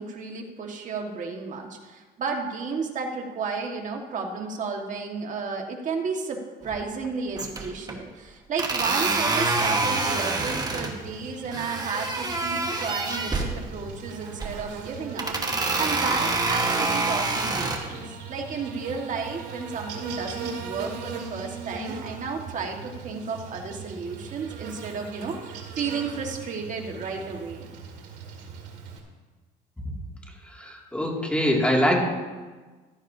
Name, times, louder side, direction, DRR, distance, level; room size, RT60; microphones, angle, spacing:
voice 1, 0.0-6.4 6.6-18.0 18.3-27.7, right 5 dB, 50° right, 2 dB, 1.7 m, -33 dB
sound 1, 6.6-7.1 7.4-8.0 8.6-10.9 11.5-13.5 14.2-14.7 15.2-17.8, right 3 dB, 25° right, 1.4 m, -26 dB
Buzz, 9.5-29.0, right 5 dB, 80° right, 2.2 m, -40 dB
voice 2, 30.4-32.0, equal, 5° left, -1 dB, 2.4 m, -23 dB
15.0 x 12.5 x 2.8 m, 1.3 s
cardioid pair, 110°, 17 cm